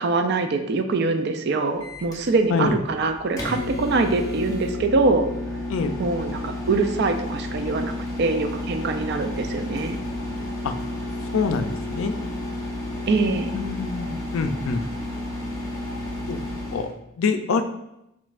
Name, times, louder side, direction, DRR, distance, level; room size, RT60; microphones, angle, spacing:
voice 1, 0.0-5.3 6.0-10.0 13.1-13.6, right 3 dB, 55° right, 7 dB, 0.4 m, -23 dB
Microwave oven, 1.8-16.9, left 1 dB, 15° left, 0.7 m, -31 dB
voice 2, 11.3-12.1 13.5-14.8 16.3-16.4 16.7-16.9 17.2-17.6, left 4 dB, 80° left, 8 dB, 0.4 m, -25 dB
5.3 x 3.1 x 2.4 m, 0.85 s
head